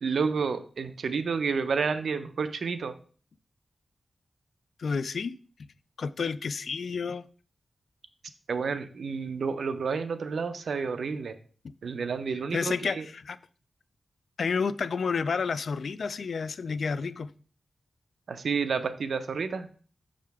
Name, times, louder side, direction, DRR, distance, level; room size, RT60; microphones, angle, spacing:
voice 1, 0.0-2.9 8.5-11.3 11.8-13.0 18.3-19.7, right 5 dB, 85° right, 0.5 m, -30 dB
voice 2, 4.8-5.4 6.0-7.2 12.5-13.4 14.4-17.3, left 5 dB, 75° left, 0.3 m, -30 dB
6.6 x 5.0 x 3.4 m
wide cardioid pair, 95°, 0 cm